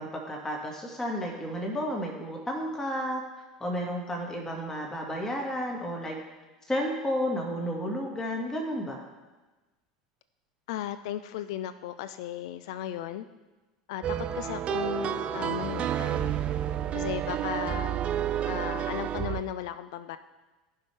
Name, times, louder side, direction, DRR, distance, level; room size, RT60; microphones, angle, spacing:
voice 1, 0.0-3.2 3.6-6.2 6.7-9.0, equal, 15° left, 0 dB, 1.9 m, -32 dB
voice 2, 10.7-13.3 13.9-16.3 16.9-18.1 18.4-20.2, left 11 dB, 60° left, 12 dB, 0.4 m, -36 dB
sound 1, 14.0-19.4, right 10 dB, 35° right, 0.5 m, -30 dB
15.0 x 5.5 x 3.5 m, 1.2 s
figure-of-eight pair, 75°, 3 cm